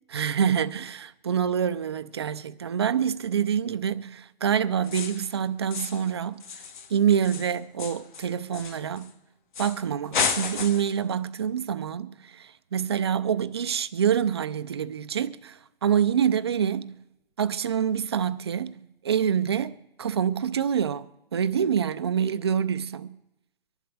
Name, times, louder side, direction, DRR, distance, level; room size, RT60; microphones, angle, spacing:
voice 1, 0.1-6.4 6.9-9.1 9.6-17.0 17.4-23.2, right 8 dB, 25° right, 0.4 m, -26 dB
sound 1, 4.8-5.3 5.7-6.1 6.4-9.1 9.5-9.8 10.1-11.0, left 6 dB, 50° left, 1.6 m, -32 dB
24.5 x 11.5 x 3.4 m
hypercardioid pair, 155°, 30 cm